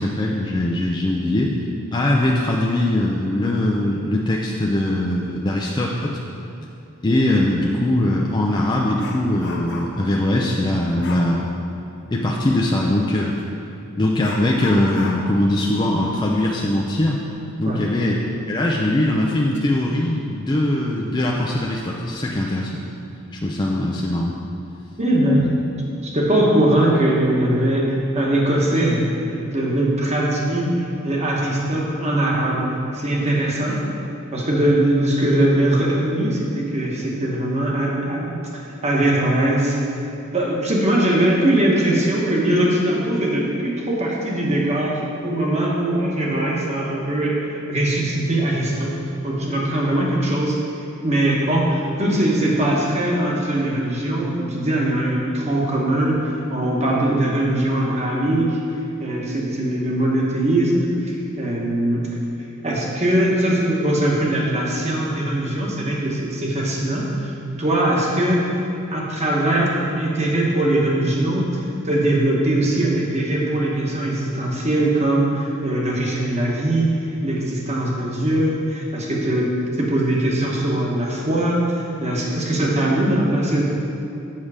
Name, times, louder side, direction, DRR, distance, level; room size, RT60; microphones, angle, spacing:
voice 1, 0.0-1.5 1.9-6.2 7.0-11.5 12.1-13.4 14.0-17.2 17.6-18.2 18.5-22.8 23.3-24.3 25.4-25.5, left 1 dB, 20° left, -2 dB, 0.4 m, -21 dB
Dog, 7.6-7.8 8.2-10.1 11.0-11.4 13.3-13.5 14.2-17.5 17.8-17.9 18.4-18.5 19.2-19.6 20.0-20.2, left 3 dB, 55° left, 0.8 m, -37 dB
voice 2, 25.0-25.5 26.0-32.7 32.9-33.8 34.3-39.8 40.3-49.0 49.2-50.6 51.0-58.6 59.0-62.1 62.6-67.3 67.6-68.4 68.9-76.9 77.2-79.5 79.8-83.6, right 1 dB, 30° right, -3 dB, 1.3 m, -21 dB
7.4 x 6.1 x 4.9 m, 2.7 s
head